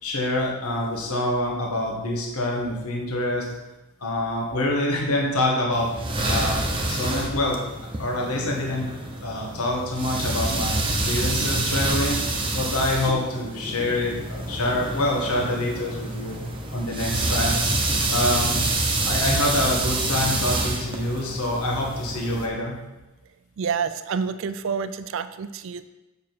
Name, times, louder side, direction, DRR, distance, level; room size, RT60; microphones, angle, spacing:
voice 1, 0.0-3.5 4.0-5.9 6.2-6.6 6.9-8.9 9.2-16.4 16.7-17.6 18.1-18.6 19.1-22.8, left 1 dB, 90° left, -1 dB, 1.5 m, -26 dB
sound 1, 5.7-22.5, right 2 dB, 25° right, 0.9 m, -27 dB
voice 2, 23.6-25.9, right 6 dB, 60° right, 12 dB, 0.4 m, -28 dB
7.2 x 6.0 x 4.6 m, 1.0 s
head